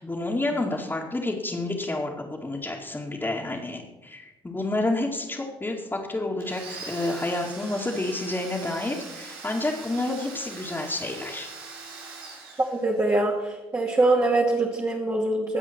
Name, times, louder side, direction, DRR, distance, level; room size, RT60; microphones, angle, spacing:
voice 1, 0.0-11.5, left 2 dB, 20° left, -5 dB, 2.4 m, -29 dB
Domestic sounds home sounds, 6.4-13.2, right 4 dB, 85° right, 2.0 m, -42 dB
voice 2, 12.7-15.6, right 2 dB, 25° right, -1 dB, 2.3 m, -23 dB
22.5 x 8.1 x 4.6 m, 1.1 s
hypercardioid pair, 45°, 12 cm